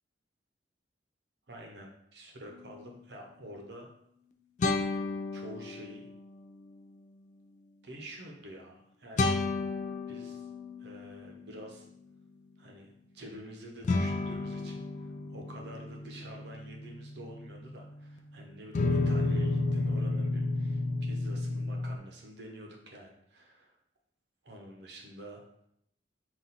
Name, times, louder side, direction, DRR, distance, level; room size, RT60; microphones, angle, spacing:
voice 1, 1.5-3.9 5.3-6.1 7.8-9.3 10.1-10.5 10.8-11.9 12.6-23.8 24.4-25.4, right 1 dB, 70° right, 1 dB, 0.8 m, -48 dB
sound 1, 2.6-2.8 4.6-6.3 9.2-11.6 13.8-18.2 18.7-22.0, left 3 dB, 45° left, 0.3 m, -32 dB
4.1 x 2.5 x 4.0 m, 0.76 s
head